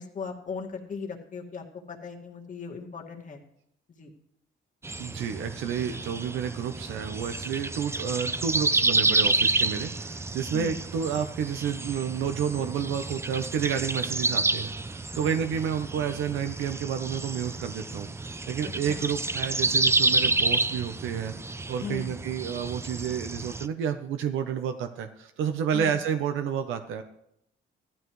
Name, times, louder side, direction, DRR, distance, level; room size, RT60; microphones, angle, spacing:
voice 1, 0.0-3.4 4.0-4.1 10.5-10.8 15.2-15.4 18.6-19.0 21.8-22.1 25.7-26.0, left 5 dB, 40° left, 0 dB, 2.0 m, -38 dB
sound 1, 4.8-23.7, right 3 dB, 15° right, 0.5 m, -29 dB
voice 2, 5.0-21.3 21.7-27.0, right 8 dB, 85° right, 7 dB, 0.8 m, -30 dB
15.5 x 12.0 x 3.2 m, 0.77 s
cardioid pair, 90°, 20 cm